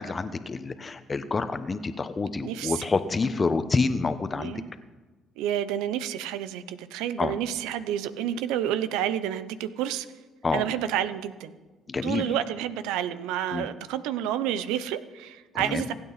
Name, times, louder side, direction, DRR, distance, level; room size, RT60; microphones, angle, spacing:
voice 1, 0.0-4.5 7.2-7.3 10.4-10.6 11.9-12.3 13.5-13.7 15.5-15.9, left 4 dB, 30° left, 11 dB, 1.1 m, -28 dB
voice 2, 2.4-2.9 4.4-4.7 5.4-10.1 10.5-11.5 12.0-15.9, right 10 dB, 85° right, 13 dB, 0.8 m, -29 dB
26.0 x 8.9 x 4.2 m, 1.3 s
supercardioid pair, 65°, 0 cm